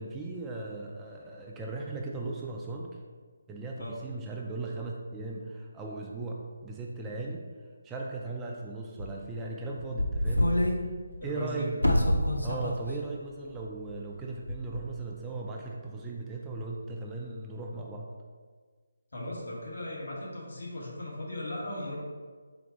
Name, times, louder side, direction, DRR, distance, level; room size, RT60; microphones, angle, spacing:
voice 1, 0.0-3.0 3.5-7.5 7.8-10.5 11.2-11.8 12.4-18.1, right 3 dB, 10° right, -2 dB, 0.3 m, -37 dB
sound 1, 9.0-9.1 9.8-10.8 11.1-11.2 11.8-12.7 13.0-13.1 13.9-14.2 14.5-14.8, left 1 dB, 85° left, 0.5 m, -26 dB
voice 2, 11.2-11.7 19.1-22.0, left 1 dB, 60° left, -5 dB, 1.4 m, -37 dB
4.3 x 2.5 x 3.9 m, 1.5 s
figure-of-eight pair, 150°, 0 cm